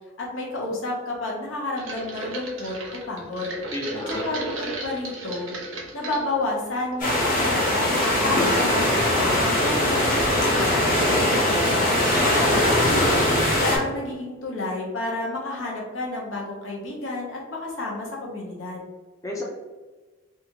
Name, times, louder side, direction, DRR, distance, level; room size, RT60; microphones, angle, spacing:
voice 1, 0.2-2.8 3.1-3.5 4.1-5.5 5.9-12.0 12.4-13.2 13.5-18.8, left 2 dB, 75° left, -2 dB, 0.8 m, -31 dB
sound 1, 1.8-6.3 6.7-7.3 7.5-7.6, right 2 dB, 85° right, 0.7 m, -35 dB
voice 2, 3.7-4.2 12.2-12.7 19.2-19.4, left 1 dB, 15° left, -3 dB, 0.4 m, -30 dB
sound 2, 7.0-13.8, left 1 dB, 40° left, 0.9 m, -21 dB
2.7 x 2.4 x 2.8 m, 1.3 s
head